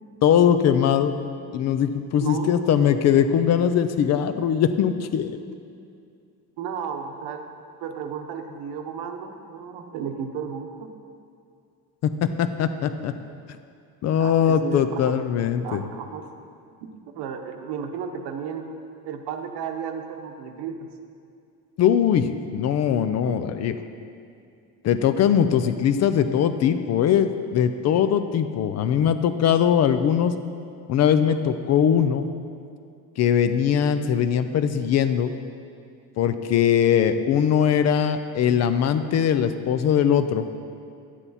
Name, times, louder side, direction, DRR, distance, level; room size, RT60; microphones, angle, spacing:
voice 1, 0.2-1.1 1.5-5.4 12.2-13.1 14.0-15.8 21.8-23.7 24.8-30.3 30.9-32.2 33.2-35.3 36.2-40.4, left 8 dB, 40° left, 10 dB, 0.4 m, -21 dB
voice 2, 2.2-2.8 6.6-7.5 7.8-10.9 14.2-15.2 15.6-16.3 16.8-18.7 19.0-20.9 23.3-23.4, right 7 dB, 75° right, 5 dB, 1.1 m, -33 dB
11.5 x 9.0 x 4.2 m, 2.4 s
cardioid pair, 160°, 40 cm